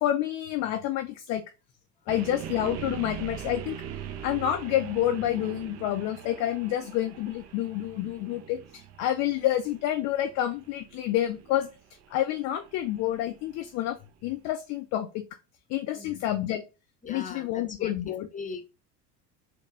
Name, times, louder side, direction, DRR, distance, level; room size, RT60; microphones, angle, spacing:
voice 1, 0.0-1.4 2.1-3.8 4.2-11.7 12.1-14.0 14.2-15.2 15.7-16.6 17.1-18.3, left 12 dB, 40° left, 6 dB, 0.4 m, -28 dB
sound 1, 2.1-14.0, right 10 dB, 35° right, 0.5 m, -42 dB
voice 2, 17.0-17.9 18.3-18.7, left 4 dB, 15° left, 6 dB, 0.8 m, -40 dB
4.1 x 2.3 x 3.2 m, 0.29 s
hypercardioid pair, 70°, 48 cm